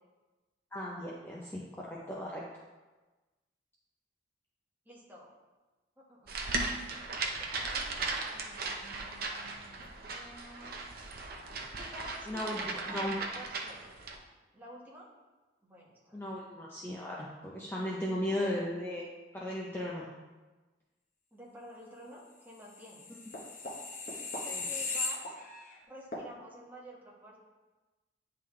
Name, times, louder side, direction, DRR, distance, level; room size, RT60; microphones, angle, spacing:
voice 1, 0.7-2.4 12.3-12.6 12.9-13.1 16.1-19.0 19.3-20.1 24.5-24.7, left 1 dB, 10° left, -4 dB, 0.6 m, -36 dB
voice 2, 4.8-5.3 6.0-6.3 6.7-10.8 11.8-13.8 14.5-15.1 15.6-16.2 18.3-18.5 21.3-23.2 24.6-25.3 25.9-27.4, equal, 10° right, -6 dB, 1.4 m, -50 dB
sound 1, 6.3-14.2, right 3 dB, 55° right, 0.7 m, -37 dB
sound 2, 22.8-25.7 26.1-26.3, left 3 dB, 45° left, 1.0 m, -37 dB
9.5 x 3.8 x 3.2 m, 1.2 s
head